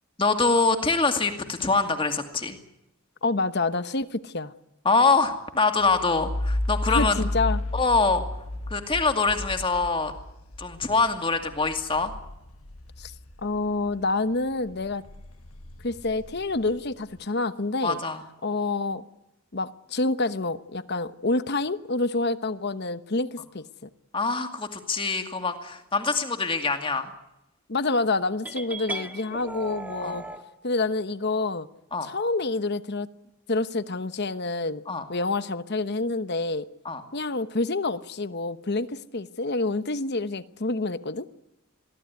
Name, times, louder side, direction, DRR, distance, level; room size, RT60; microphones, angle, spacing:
voice 1, 0.2-2.6 4.8-7.2 7.7-8.2 8.7-10.1 10.6-12.1 17.8-18.2 24.1-27.1 30.0-30.2 31.9-32.1 34.9-35.0 36.8-37.0, left 4 dB, 25° left, 2.3 m, -24 dB
voice 2, 3.2-4.5 6.9-7.6 13.0-13.1 13.4-15.0 15.8-18.0 18.4-19.0 19.5-23.6 27.7-30.2 30.6-31.7 32.0-33.1 33.5-34.8 35.1-36.7 37.1-41.3, left 3 dB, 50° left, 1.0 m, -27 dB
sound 1, 5.8-14.0 14.4-17.0, left 1 dB, 80° left, 1.6 m, -33 dB
sound 2, 28.4-30.4, right 2 dB, 5° right, 1.8 m, -36 dB
23.0 x 16.5 x 9.6 m
head